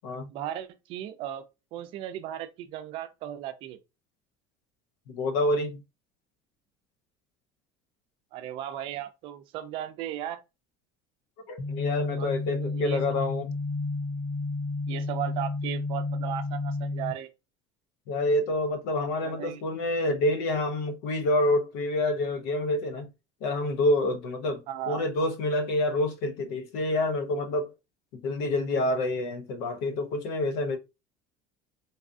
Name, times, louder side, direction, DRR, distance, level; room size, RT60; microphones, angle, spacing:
voice 1, 0.3-1.4 1.7-3.8 8.3-10.4 12.1-12.3 12.6-13.2 14.9-17.3 19.2-19.6 24.7-25.1, right 11 dB, 45° right, 0.5 m, -36 dB
voice 2, 5.1-5.8 11.5-13.5 18.1-23.1 23.4-27.7 28.1-30.8, left 1 dB, 85° left, 0.7 m, -27 dB
sound 1, 11.6-17.1, left 3 dB, 35° left, 0.5 m, -31 dB
4.0 x 2.4 x 2.5 m
cardioid pair, 180°, 12 cm